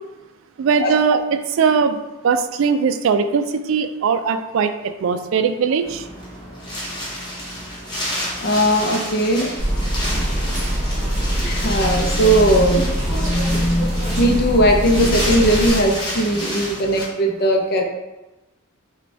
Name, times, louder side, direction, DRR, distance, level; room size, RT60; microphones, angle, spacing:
voice 1, 0.6-1.2 1.5-2.0 2.2-6.1, right 6 dB, 65° right, 9 dB, 0.3 m, -19 dB
Wind, 5.8-17.0, equal, 20° left, 0.9 m, -30 dB
voice 2, 8.4-9.5 11.4-17.8, right 1 dB, 45° left, 2 dB, 0.5 m, -19 dB
sound 1, 9.6-15.7, equal, 35° right, 1.3 m, -23 dB
5.0 x 2.3 x 3.3 m, 1.0 s
head